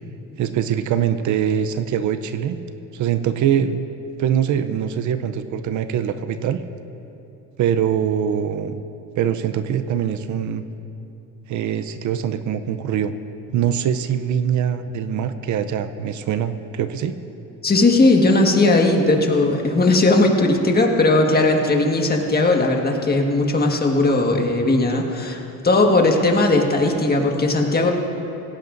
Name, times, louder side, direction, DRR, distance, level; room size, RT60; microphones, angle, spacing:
voice 1, 0.4-2.6 2.9-3.9 4.2-6.6 7.6-8.8 9.2-10.6 11.5-13.1 13.5-17.1, right 9 dB, 60° right, 11 dB, 0.7 m, -23 dB
voice 2, 17.6-27.9, left 2 dB, 25° left, 2 dB, 1.6 m, -18 dB
18.0 x 16.5 x 2.6 m, 2.8 s
cardioid pair, 95°, 34 cm